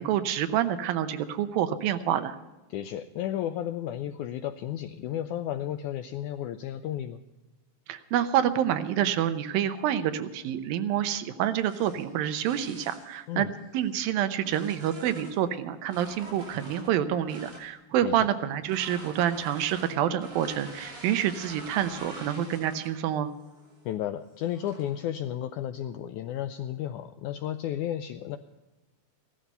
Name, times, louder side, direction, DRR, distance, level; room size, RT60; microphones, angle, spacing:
voice 1, 0.0-2.4 7.9-13.5 13.7-23.3, right 10 dB, 85° right, 10 dB, 2.7 m, -27 dB
voice 2, 2.7-7.2 13.3-13.5 18.0-18.3 23.8-28.4, left 11 dB, 80° left, 9 dB, 1.7 m, -33 dB
sound 1, 11.5-13.1 13.8-15.4 15.8-17.7 18.6-23.1 23.5-23.8 24.5-25.0, right 1 dB, 55° right, 5.7 m, -47 dB
16.0 x 12.5 x 5.5 m, 1.1 s
omnidirectional pair, 4.1 m